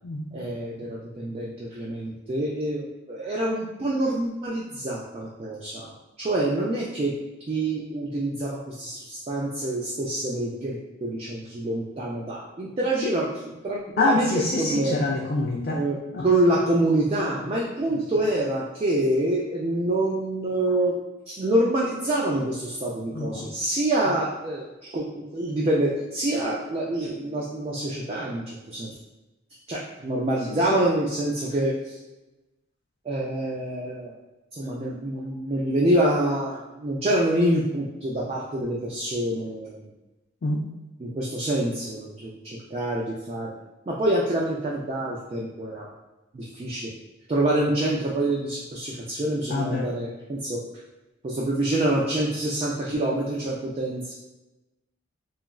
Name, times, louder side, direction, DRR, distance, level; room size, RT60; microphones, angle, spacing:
voice 1, 0.3-7.1 7.5-14.3 14.6-14.9 15.7-21.0 21.3-28.9 29.7-32.0 33.1-34.1 34.5-39.8 41.0-43.5 43.9-45.9 46.3-46.9 47.3-50.6 51.2-54.1, right 1 dB, 30° right, -4 dB, 0.3 m, -26 dB
voice 2, 14.0-15.8 16.1-16.3 17.9-18.0 23.1-23.5 30.5-30.9 40.4-40.7 49.5-49.9, left 2 dB, 50° left, -3 dB, 0.3 m, -26 dB
2.9 x 2.4 x 2.3 m, 1.0 s
head